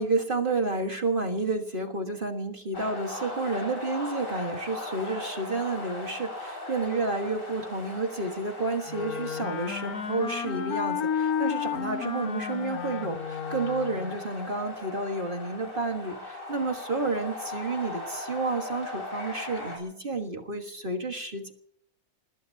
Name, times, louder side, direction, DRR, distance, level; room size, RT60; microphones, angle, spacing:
voice 1, 0.0-21.5, right 3 dB, 35° right, 4 dB, 1.6 m, -30 dB
sound 1, 2.7-19.8, left 2 dB, 60° left, 6.5 m, -39 dB
Wind instrument woodwind instrument, 8.9-14.2, left 7 dB, 80° left, 1.8 m, -32 dB
26.0 x 20.0 x 2.8 m, 0.68 s
omnidirectional pair, 1.6 m